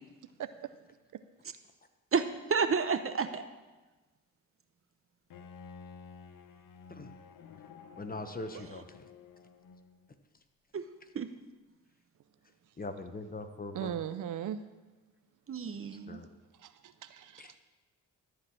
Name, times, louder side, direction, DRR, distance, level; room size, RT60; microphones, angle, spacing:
voice 1, 0.4-0.7 1.1-1.2 13.7-14.6 16.6-17.6, right 10 dB, 65° right, 12 dB, 0.6 m, -38 dB
voice 2, 2.1-3.4 10.7-10.9 11.1-11.3 15.5-16.2, right 5 dB, 40° right, 10 dB, 0.9 m, -30 dB
Bowed string instrument, 5.3-10.1, left 5 dB, 75° left, 0.9 m, -52 dB
voice 3, 8.0-9.1 12.8-13.9 16.1-16.3 17.4-17.5, left 2 dB, 25° left, 8 dB, 1.1 m, -41 dB
13.0 x 4.7 x 8.7 m, 1.2 s
cardioid pair, 65°, 33 cm